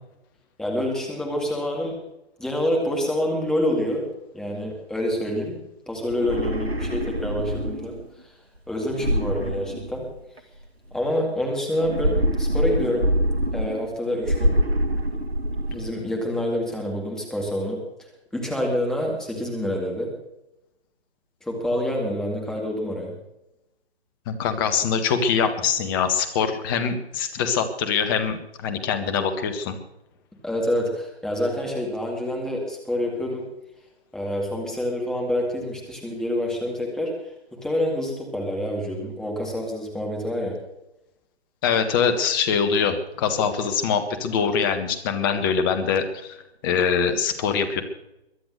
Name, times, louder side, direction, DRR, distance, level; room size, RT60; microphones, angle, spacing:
voice 1, 0.6-2.0 2.4-4.1 4.3-8.0 8.2-8.3 8.7-10.1 10.9-13.1 13.5-14.6 15.7-20.1 21.4-23.2 30.4-33.5 34.1-40.6, left 1 dB, ahead, -1 dB, 2.2 m, -27 dB
sound 1, 6.1-8.0 8.9-10.4 11.8-13.9 14.2-15.9, equal, 75° right, 2.2 m, -25 dB
voice 2, 24.3-29.7 41.6-46.4 46.6-47.8, left 6 dB, 20° left, 9 dB, 1.5 m, -23 dB
22.5 x 8.6 x 6.6 m, 0.88 s
figure-of-eight pair, 135°, 32 cm